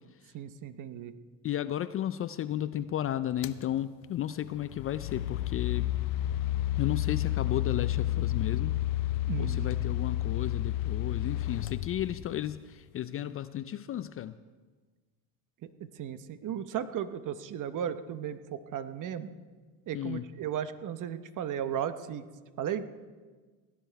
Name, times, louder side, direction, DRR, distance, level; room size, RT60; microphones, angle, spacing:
voice 1, 0.3-1.1 9.3-9.7 15.8-19.3 19.9-22.2 22.6-22.9, right 9 dB, 45° right, 12 dB, 0.9 m, -35 dB
voice 2, 1.4-5.9 6.8-8.8 9.4-14.4 19.9-20.3, left 11 dB, 35° left, 14 dB, 0.4 m, -33 dB
sound 1, 3.4-3.6 4.5-12.5, left 14 dB, 85° left, 0.7 m, -31 dB
17.5 x 10.0 x 4.6 m, 1.4 s
supercardioid pair, 90°, 42 cm